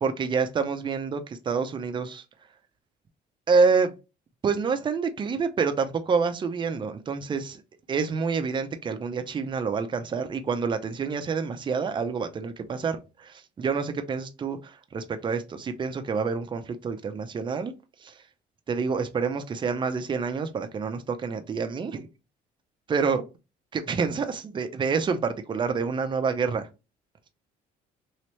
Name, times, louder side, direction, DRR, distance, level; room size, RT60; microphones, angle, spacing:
voice 1, 0.0-2.2 3.5-4.0 4.4-7.6 7.9-17.7 18.0-18.2 18.7-22.1 22.9-23.2 23.7-26.7, right 5 dB, 30° right, 0.5 m, -27 dB
3.1 x 2.9 x 3.1 m
cardioid pair, 110°, 17 cm